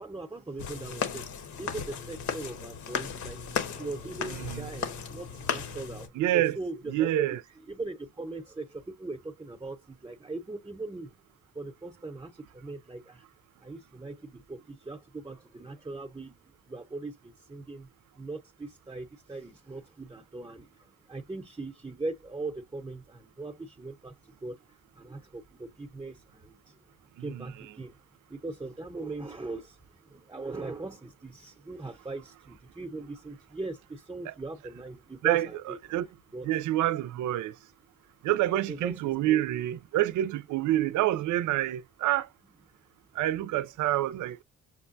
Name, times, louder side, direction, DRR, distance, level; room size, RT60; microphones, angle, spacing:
voice 1, 0.0-7.3 7.7-11.1 11.5-13.3 13.6-16.4 16.7-17.9 18.2-26.8 27.2-28.0 28.3-36.0 36.3-36.5 38.7-39.4, right 3 dB, 15° right, 0.7 m, -40 dB
sound 1, 0.6-6.1, left 7 dB, 75° left, 1.1 m, -35 dB
voice 2, 4.3-4.7 6.1-6.6 6.9-7.4 27.2-27.5 34.3-34.4 35.2-36.1 36.4-37.5 38.2-42.3 43.2-44.4, right 14 dB, 75° right, 0.5 m, -27 dB
6.4 x 2.2 x 2.6 m
cardioid pair, 90°, 30 cm